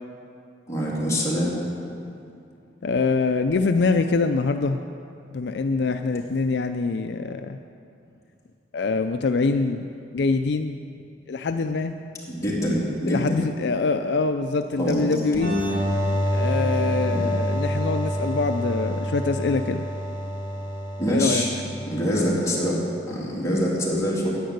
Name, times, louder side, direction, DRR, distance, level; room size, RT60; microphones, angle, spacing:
voice 1, 0.7-1.6 12.3-13.2 14.8-15.1 17.1-17.2 21.0-21.5 21.8-22.8 23.1-24.3, equal, 15° left, -6 dB, 2.9 m, -24 dB
voice 2, 2.8-4.8 5.3-7.6 8.7-9.9 10.1-10.9 11.3-11.9 13.1-15.5 16.3-19.8 21.1-21.6, left 4 dB, 65° left, 7 dB, 0.4 m, -24 dB
sound 1, 15.3-22.8, equal, 75° right, 2.5 m, -27 dB
10.5 x 9.4 x 8.0 m, 2.6 s
head